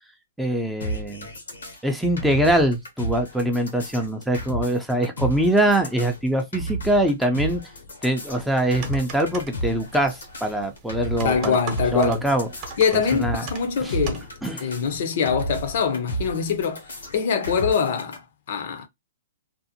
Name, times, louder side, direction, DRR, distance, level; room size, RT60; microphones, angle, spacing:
voice 1, 0.4-1.3 1.8-7.6 8.0-11.6 11.9-12.5 12.9-13.4 13.8-14.0 14.4-14.7, right 1 dB, ahead, 0.5 m, -23 dB
sound 1, 0.8-18.2, right 2 dB, 90° left, 1.0 m, -33 dB
sound 2, 8.3-14.3, right 3 dB, 35° right, 0.8 m, -39 dB
voice 2, 11.2-12.3 12.8-14.2 14.6-16.8 17.1-18.2 18.5-18.9, left 6 dB, 60° left, 0.6 m, -23 dB
2.6 x 2.0 x 2.7 m
hypercardioid pair, 135°, 0 cm